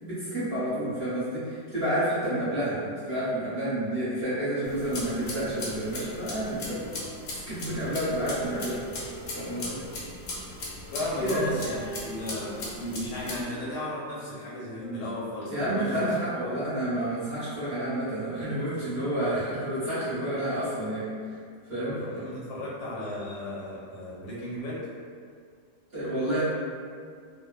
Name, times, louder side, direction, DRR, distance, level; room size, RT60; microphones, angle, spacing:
voice 1, 0.0-6.8 7.5-8.8 9.3-9.8 11.2-11.5 15.5-21.1 21.7-21.9 25.9-26.4, right 1 dB, 45° right, -14 dB, 0.9 m, -29 dB
sound 1, 4.2-10.0 10.7-16.4, right 1 dB, 65° right, 0.5 m, -46 dB
sound 2, 4.6-13.4, left 2 dB, 65° left, 1.0 m, -39 dB
voice 2, 10.9-16.1 21.8-24.8, left 1 dB, 85° left, -7 dB, 1.5 m, -35 dB
3.1 x 2.1 x 2.3 m, 2.1 s
omnidirectional pair, 2.0 m